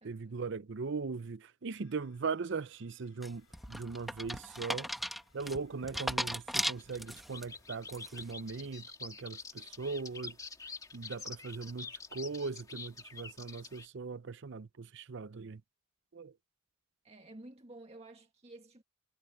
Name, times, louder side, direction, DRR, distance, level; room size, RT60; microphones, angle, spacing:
voice 1, 0.0-4.9 5.3-10.4 10.9-15.6 16.1-16.3, right 4 dB, 60° right, 0.6 m, -39 dB
sound 1, 1.7-8.8, left 4 dB, 65° left, 7.5 m, -70 dB
sound 2, 3.2-7.4 7.9-8.3, equal, ahead, 1.2 m, -37 dB
sound 3, 6.8-13.9, left 4 dB, 15° left, 2.0 m, -47 dB
voice 2, 17.0-18.8, right 2 dB, 30° right, 1.8 m, -52 dB
head